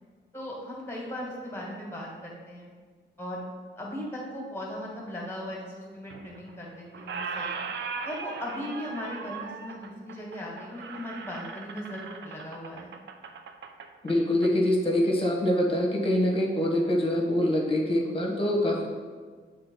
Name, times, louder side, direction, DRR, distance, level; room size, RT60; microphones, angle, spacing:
voice 1, 0.3-2.7 3.2-3.4 3.8-7.6 8.0-12.9, left 1 dB, 10° left, -3 dB, 1.9 m, -38 dB
Squeak, 6.1-6.7 6.9-14.5, right 5 dB, 65° right, 0.5 m, -39 dB
voice 2, 14.0-18.9, left 1 dB, 30° left, 0 dB, 1.2 m, -25 dB
7.6 x 3.8 x 4.6 m, 1.5 s
wide cardioid pair, 120°, 20 cm